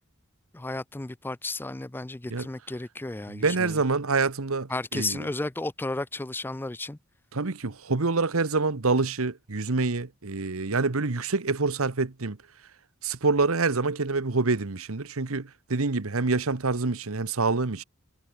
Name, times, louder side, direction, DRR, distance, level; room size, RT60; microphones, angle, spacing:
voice 1, 0.5-3.8 4.7-7.0, left 2 dB, 10° left, 0.4 m, -33 dB
voice 2, 3.3-5.2 7.3-12.4 13.0-17.8, right 3 dB, 75° right, 1.1 m, -26 dB
head